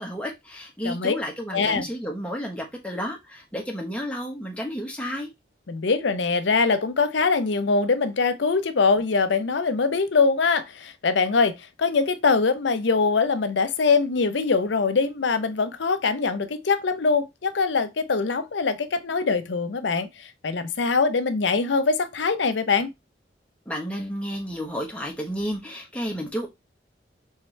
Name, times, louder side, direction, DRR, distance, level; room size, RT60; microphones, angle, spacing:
voice 1, 0.0-5.3 23.7-26.5, equal, 5° left, 1.0 m, -31 dB
voice 2, 0.8-1.2 1.5-1.9 5.7-20.1 20.4-22.9, left 4 dB, 80° left, 0.6 m, -23 dB
4.4 x 3.6 x 3.1 m
head